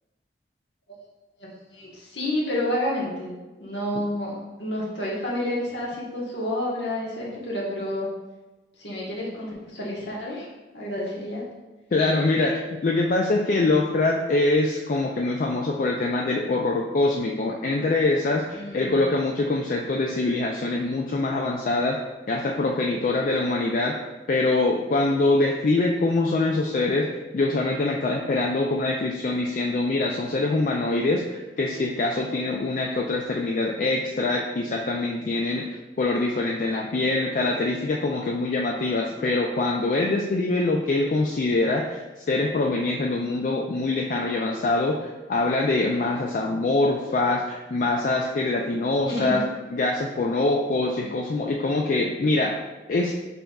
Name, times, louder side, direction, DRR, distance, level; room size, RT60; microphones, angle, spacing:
voice 1, 1.4-3.3 3.6-4.3 4.6-8.1 8.8-10.5 10.7-11.4 18.5-19.0 49.0-49.4 51.0-51.1, left 1 dB, 75° left, -4 dB, 1.3 m, -29 dB
voice 2, 11.9-22.0 22.3-24.0 24.3-27.1 27.3-42.0 42.3-49.4 49.7-52.5 52.9-53.1, left 2 dB, 45° left, 0 dB, 0.3 m, -24 dB
5.5 x 4.0 x 2.3 m, 1.2 s
head